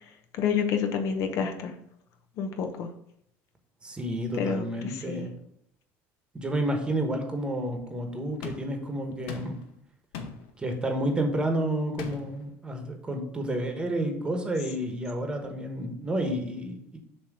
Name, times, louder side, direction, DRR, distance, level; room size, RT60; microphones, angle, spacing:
voice 1, 0.3-1.7 2.4-2.9 4.3-5.2, left 6 dB, 60° left, 6 dB, 0.8 m, -29 dB
voice 2, 3.8-5.3 6.3-9.6 10.6-17.0, right 1 dB, 15° right, 4 dB, 1.2 m, -30 dB
sound 1, 8.4-8.8 9.3-9.7 10.1-10.5 12.0-12.4, left 5 dB, 90° left, 0.9 m, -38 dB
7.3 x 3.0 x 6.1 m, 0.73 s
cardioid pair, 130°, 6 cm